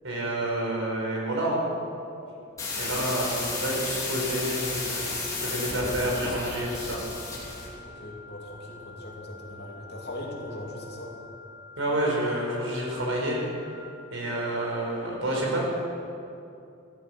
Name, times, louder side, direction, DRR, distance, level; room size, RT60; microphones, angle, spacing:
voice 1, 0.0-1.6 2.8-7.0 11.8-13.4 14.1-15.6, right 1 dB, 75° right, -2 dB, 4.9 m, -29 dB
sound 1, 2.6-7.7, left 3 dB, 15° left, 2.9 m, -33 dB
sound 2, 3.8-13.8, left 4 dB, 25° right, 3.1 m, -48 dB
voice 2, 7.8-11.1, left 1 dB, 50° left, -2 dB, 3.0 m, -40 dB
15.0 x 14.0 x 6.3 m, 2.6 s
head